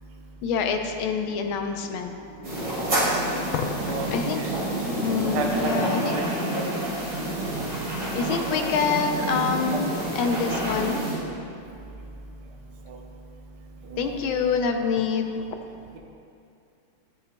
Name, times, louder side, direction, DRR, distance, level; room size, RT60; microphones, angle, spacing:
voice 1, 0.4-2.1 3.5-4.4 5.0-6.1 8.1-11.0 14.0-15.2, left 5 dB, 85° left, 5 dB, 1.5 m, -26 dB
sound 1, 2.4-11.2, right 1 dB, 45° right, 2.7 m, -28 dB
voice 2, 5.3-6.2 6.5-6.6 9.7-10.0 12.9-13.0 13.9-14.6, right 3 dB, 65° right, 0 dB, 1.3 m, -32 dB
13.0 x 8.0 x 2.2 m, 2.5 s
omnidirectional pair, 2.2 m